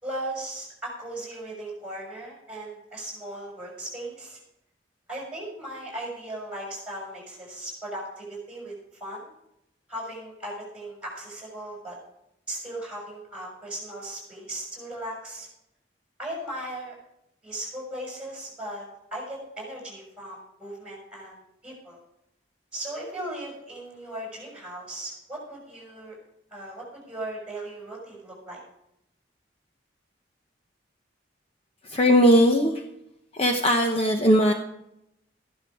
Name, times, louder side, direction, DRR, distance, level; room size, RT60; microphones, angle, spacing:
voice 1, 0.0-4.4 5.1-8.7 9.0-9.3 9.9-12.0 12.5-15.5 16.2-16.9 17.4-22.0 22.7-26.1 26.5-28.6, right 1 dB, 5° right, -3 dB, 6.3 m, -37 dB
voice 2, 31.9-32.7 33.4-34.5, equal, 35° left, 3 dB, 0.8 m, -19 dB
14.5 x 11.5 x 4.9 m, 0.81 s
head